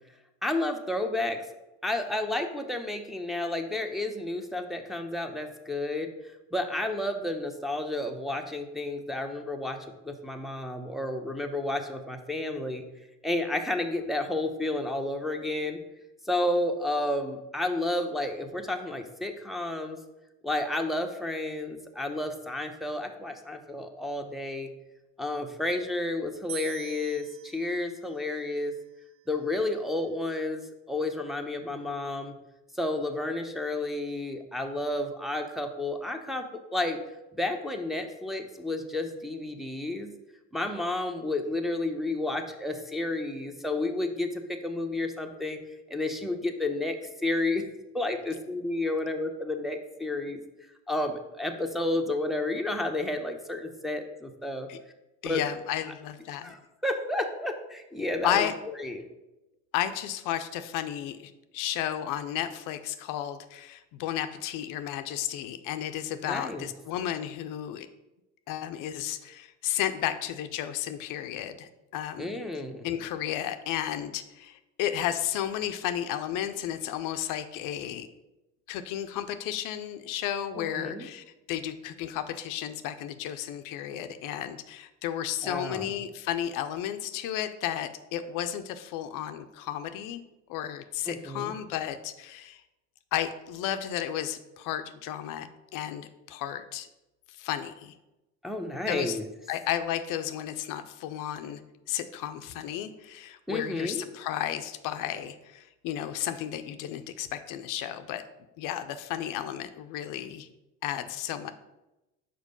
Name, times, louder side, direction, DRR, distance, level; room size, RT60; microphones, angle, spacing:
voice 1, 0.4-1.4 1.8-6.1 6.5-9.8 10.0-12.8 13.2-15.8 16.2-20.0 20.4-24.7 25.2-28.7 29.3-32.3 32.7-37.0 37.3-40.1 40.5-45.6 45.9-47.7 47.9-50.4 50.9-54.7 55.2-55.4 56.4-58.5 58.8-59.0 66.2-66.7 72.2-72.9 80.6-81.1 85.4-85.9 91.1-91.5 98.4-99.2 103.5-104.1, left 2 dB, ahead, 3 dB, 0.8 m, -31 dB
sound 1, 26.5-29.7, right 12 dB, 45° right, 0.4 m, -46 dB
voice 2, 55.2-56.5 58.2-58.5 59.7-67.9 68.5-72.4 72.8-78.1 78.7-90.2 90.5-92.6 93.1-96.9 97.3-97.9 98.9-99.2 99.5-101.6 101.9-108.2 108.6-110.5 110.8-111.5, left 11 dB, 75° left, 9 dB, 0.6 m, -33 dB
5.1 x 4.6 x 5.2 m, 0.99 s
supercardioid pair, 80°, 33 cm